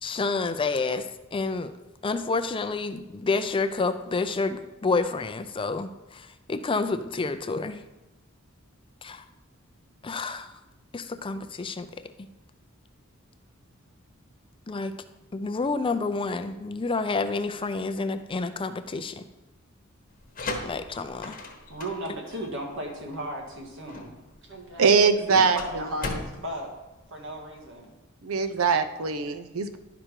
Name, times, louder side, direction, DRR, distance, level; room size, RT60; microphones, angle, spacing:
voice 1, 0.0-1.1 1.3-1.7 2.0-5.9 6.5-7.8 9.0-9.2 10.0-10.5 10.9-11.9 14.7-14.9 15.3-19.2 20.6-21.4, left 3 dB, 25° left, 10 dB, 0.5 m, -29 dB
sound 1, 20.1-27.7, left 3 dB, 45° left, 1.1 m, -39 dB
voice 2, 21.7-24.1 24.4-24.8 25.3-26.7 27.1-27.9, right 1 dB, 65° right, 0 dB, 1.9 m, -35 dB
voice 3, 24.8-25.8 28.2-29.8, right 5 dB, 85° right, 10 dB, 0.7 m, -22 dB
11.5 x 5.1 x 4.5 m, 1.1 s
head